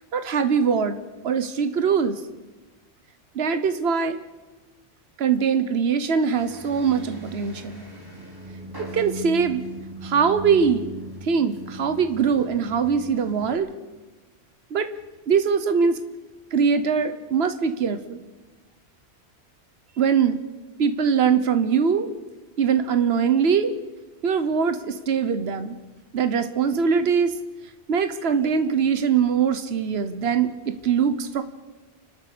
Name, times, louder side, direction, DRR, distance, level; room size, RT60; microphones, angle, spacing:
voice 1, 0.1-2.2 3.3-4.2 5.2-7.8 8.9-9.6 10.0-10.9 11.2-13.7 14.7-14.9 15.3-16.0 16.5-18.2 20.0-20.4 20.8-22.1 22.6-23.7 24.2-25.8 26.1-27.3 27.9-31.4, right 6 dB, 75° right, 10 dB, 1.3 m, -22 dB
sound 1, 6.3-13.6, right 1 dB, 20° right, 5.0 m, -38 dB
30.0 x 13.0 x 6.8 m, 1.2 s
omnidirectional pair, 1.1 m